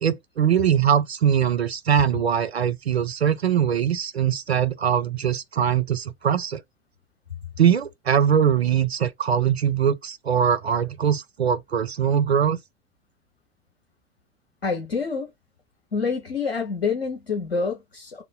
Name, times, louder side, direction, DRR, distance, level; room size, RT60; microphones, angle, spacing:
voice 1, 0.0-6.6 7.6-12.6, right 8 dB, 80° right, 0.6 m, -22 dB
voice 2, 14.6-15.3 15.9-18.2, left 5 dB, 80° left, 1.3 m, -27 dB
3.7 x 2.6 x 3.6 m
figure-of-eight pair, 85°, 31 cm